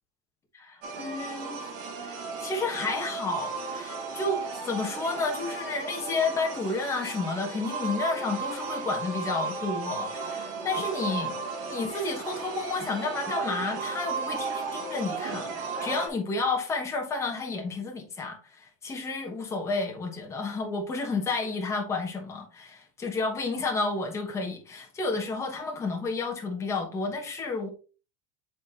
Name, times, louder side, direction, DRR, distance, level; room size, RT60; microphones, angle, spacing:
voice 1, 0.5-1.7 2.0-11.3 11.7-15.5 15.8-27.7, left 3 dB, 15° left, 1.2 m, -31 dB
sound 1, 0.8-16.1, right 4 dB, 55° right, 1.6 m, -35 dB
8.4 x 4.1 x 2.8 m
cardioid pair, 160°, 18 cm